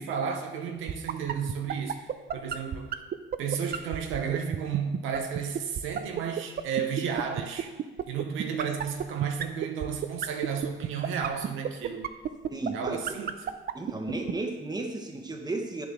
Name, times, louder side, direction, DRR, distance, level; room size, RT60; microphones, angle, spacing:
voice 1, 0.0-2.9 3.4-7.7 8.1-12.1 12.7-13.5, right 7 dB, 90° right, 4 dB, 0.9 m, -33 dB
sound 1, 0.9-14.3, right 9 dB, 50° right, 0.5 m, -29 dB
voice 2, 12.5-13.0 13.7-15.9, right 2 dB, 20° right, 3 dB, 1.2 m, -33 dB
9.3 x 7.1 x 3.6 m, 1.2 s
cardioid pair, 90°, 20 cm